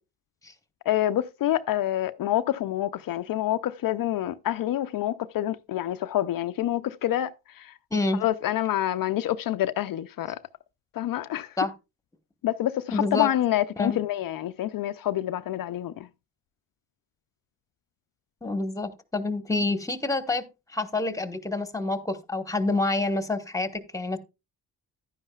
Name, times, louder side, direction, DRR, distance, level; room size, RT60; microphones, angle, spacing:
voice 1, 0.9-7.8 8.1-10.4 10.9-11.6 12.4-16.1, left 13 dB, 65° left, 0.5 m, -27 dB
voice 2, 12.9-13.3 13.8-14.0 18.4-20.4 20.7-24.2, left 2 dB, 10° left, 1.2 m, -27 dB
11.0 x 9.8 x 2.3 m
cardioid pair, 90°, 37 cm